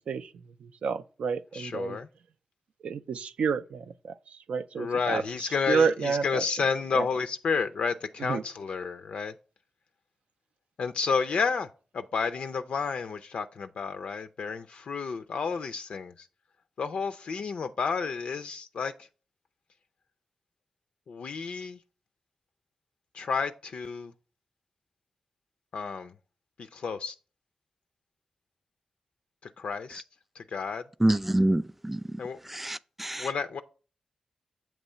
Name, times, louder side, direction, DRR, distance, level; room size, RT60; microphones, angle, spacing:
voice 1, 0.6-2.0 2.8-6.4 6.9-7.1 8.2-8.4, right 5 dB, 85° right, 0.3 m, -30 dB
voice 2, 1.5-2.1 4.8-9.3 10.8-11.7 11.9-16.1 16.8-18.9 21.1-21.8 23.1-24.1 25.7-26.1 26.7-27.1 29.6-30.0 30.4-30.8 32.2-32.4 33.2-33.6, left 5 dB, 75° left, 0.3 m, -31 dB
voice 3, 31.0-33.3, right 1 dB, 10° right, 0.3 m, -27 dB
7.1 x 3.0 x 5.4 m
cardioid pair, 45°, 2 cm